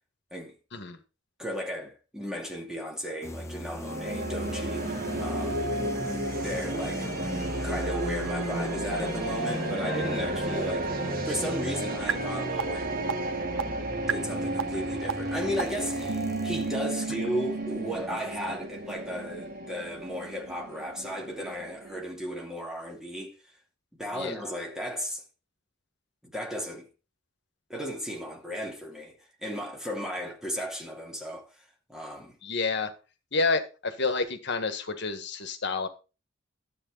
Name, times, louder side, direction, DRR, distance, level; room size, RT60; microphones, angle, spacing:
voice 1, 1.4-5.8 6.4-7.1 7.6-10.9 11.3-13.0 13.9-23.4 24.0-25.2 26.2-26.8 27.7-29.1 29.4-31.5 31.9-32.4, equal, 5° right, 2.5 m, -35 dB
sound 1, 3.2-16.9, left 1 dB, 15° left, 1.2 m, -38 dB
sound 2, 3.8-22.0, right 1 dB, 45° right, 1.7 m, -33 dB
sound 3, 12.1-12.2 12.6-12.7 13.1-13.2 13.6-13.7 14.1-14.2 14.6-14.7 15.1-15.2 15.6-15.7 16.1-17.8, right 6 dB, 90° right, 0.9 m, -30 dB
voice 2, 32.4-32.9 33.3-35.9, left 3 dB, 60° left, 1.6 m, -29 dB
12.0 x 8.1 x 3.9 m
head